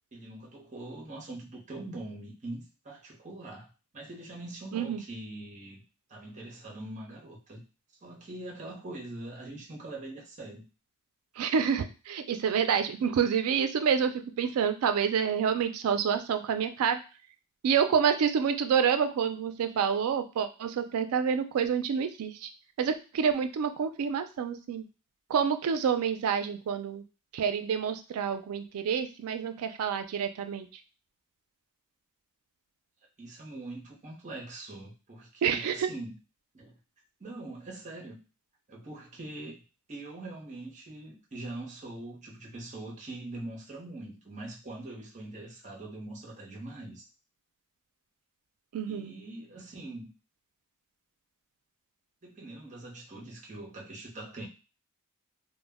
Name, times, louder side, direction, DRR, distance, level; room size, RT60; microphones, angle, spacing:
voice 1, 0.1-5.8 6.1-7.6 8.0-10.7 33.2-36.1 36.5-36.8 37.2-38.2 38.7-39.6 39.9-47.1 48.9-50.1 52.2-54.5, right 2 dB, 35° right, -1 dB, 0.7 m, -43 dB
voice 2, 4.7-5.0 11.4-17.0 17.6-22.5 22.8-24.8 25.3-27.0 27.3-30.7 35.4-35.9 48.7-49.1, right 7 dB, 75° right, 8 dB, 0.3 m, -28 dB
2.1 x 2.1 x 3.3 m, 0.33 s
head